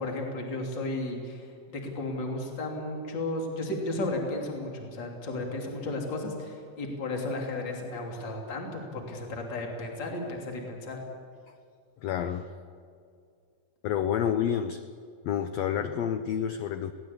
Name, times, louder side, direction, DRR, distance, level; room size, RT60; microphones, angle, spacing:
voice 1, 0.0-11.0, left 2 dB, 35° left, 1 dB, 3.3 m, -34 dB
voice 2, 12.0-12.5 13.8-14.8 15.2-16.9, left 9 dB, 90° left, 9 dB, 1.4 m, -29 dB
21.5 x 17.5 x 8.5 m, 2.3 s
omnidirectional pair, 3.9 m